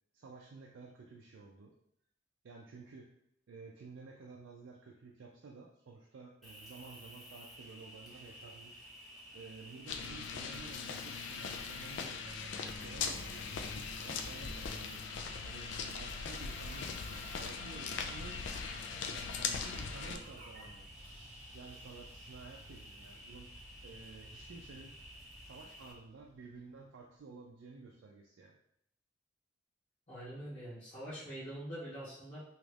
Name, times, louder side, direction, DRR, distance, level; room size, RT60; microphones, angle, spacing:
voice 1, 0.1-1.7 2.4-3.1 3.5-8.8 9.3-15.7 16.0-18.4 19.1-21.1 21.5-25.0 25.4-28.6, right 4 dB, 85° right, -1 dB, 0.4 m, -52 dB
Cricket, 6.4-25.9, equal, ahead, 0.6 m, -53 dB
sound 1, 9.9-20.2, left 5 dB, 70° left, 0.3 m, -40 dB
sound 2, 18.4-27.0, right 1 dB, 35° right, 0.9 m, -56 dB
voice 2, 30.1-32.4, right 1 dB, 40° left, -13 dB, 1.1 m, -44 dB
2.9 x 2.4 x 3.3 m, 0.75 s
head